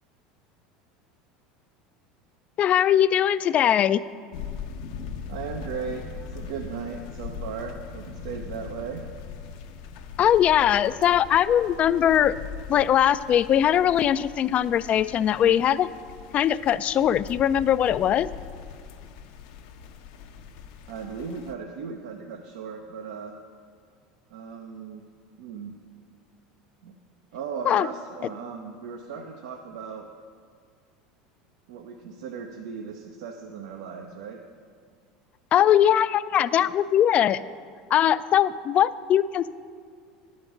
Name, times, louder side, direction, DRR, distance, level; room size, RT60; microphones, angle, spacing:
voice 1, 2.6-4.0 10.2-12.3 12.7-15.9 16.3-18.3 27.7-27.9 35.5-37.4 37.9-39.5, left 10 dB, 40° left, 16 dB, 0.3 m, -21 dB
sound 1, 4.3-21.5, left 6 dB, 70° left, 0.7 m, -41 dB
voice 2, 5.3-6.0 6.3-9.0 20.9-23.3 24.3-25.0 25.4-25.7 26.8-26.9 27.3-30.1 31.7-34.4, right 6 dB, 75° right, 3 dB, 0.7 m, -37 dB
10.0 x 5.2 x 7.2 m, 2.1 s
hypercardioid pair, 95°, 3 cm